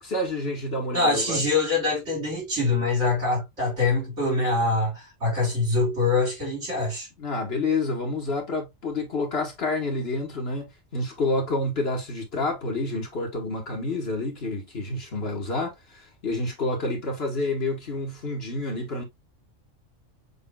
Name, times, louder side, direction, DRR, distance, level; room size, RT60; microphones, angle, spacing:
voice 1, 0.0-1.4 7.2-19.0, left 2 dB, 55° left, 1.7 m, -29 dB
voice 2, 0.9-7.1, left 3 dB, 65° right, 4.1 m, -24 dB
6.9 x 3.3 x 2.2 m
omnidirectional pair, 1.3 m